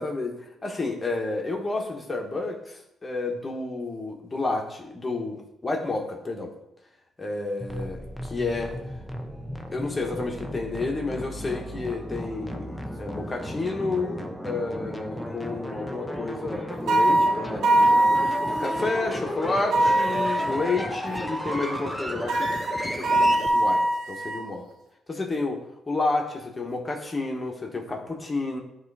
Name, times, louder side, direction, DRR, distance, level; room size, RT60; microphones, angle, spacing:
voice 1, 0.0-6.5 7.2-8.8 9.7-17.9 18.6-22.5 22.8-24.6 25.1-28.6, left 3 dB, 25° left, 1 dB, 1.3 m, -30 dB
sound 1, 7.6-23.5, equal, ahead, 0.8 m, -34 dB
sound 2, 16.9-19.0 19.7-21.0 22.3-24.5, right 1 dB, 75° right, 0.8 m, -22 dB
9.6 x 3.2 x 4.8 m, 0.83 s
cardioid pair, 90°, 0 cm